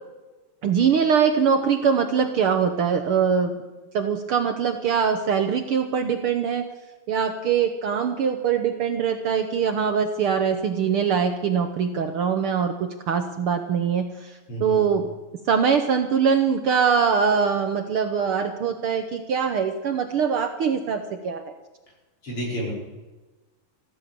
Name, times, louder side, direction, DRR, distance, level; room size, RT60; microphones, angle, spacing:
voice 1, 0.6-3.5 3.9-6.7 7.1-14.3 14.6-15.1 15.5-21.4, right 6 dB, 70° right, 6 dB, 1.4 m, -22 dB
voice 2, 14.5-14.8 22.2-22.7, equal, 45° left, -4 dB, 5.8 m, -30 dB
14.5 x 13.5 x 7.0 m, 1.2 s
omnidirectional pair, 3.5 m